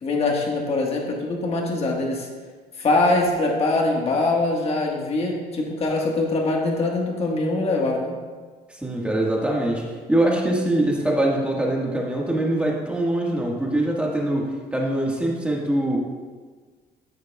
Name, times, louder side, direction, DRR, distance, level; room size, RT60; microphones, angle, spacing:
voice 1, 0.0-2.3 2.8-8.2, left 2 dB, 35° left, -1 dB, 1.5 m, -23 dB
voice 2, 8.7-16.0, right 1 dB, 5° right, -2 dB, 1.6 m, -23 dB
14.0 x 6.5 x 2.3 m, 1.5 s
cardioid pair, 110°, 17 cm